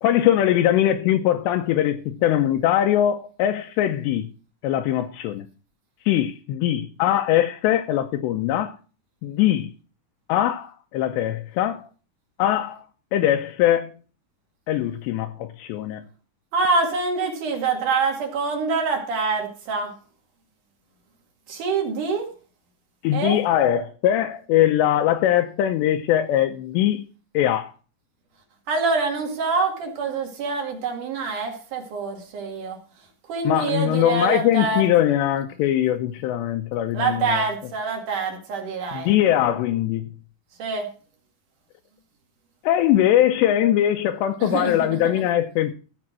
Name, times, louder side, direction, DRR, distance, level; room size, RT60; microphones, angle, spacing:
voice 1, 0.0-4.3 4.6-5.5 6.1-8.7 9.2-9.7 10.3-11.9 12.4-12.8 13.1-13.9 14.7-16.1 23.0-27.0 27.3-27.7 33.4-37.4 38.9-40.0 42.6-45.7, left 12 dB, 80° left, 2.9 m, -21 dB
voice 2, 16.5-19.9 21.5-22.3 23.1-23.4 28.7-32.8 33.3-34.9 36.9-39.1 40.6-40.9 44.4-45.2, right 4 dB, 50° right, 3.4 m, -25 dB
15.0 x 5.2 x 6.1 m
omnidirectional pair, 5.0 m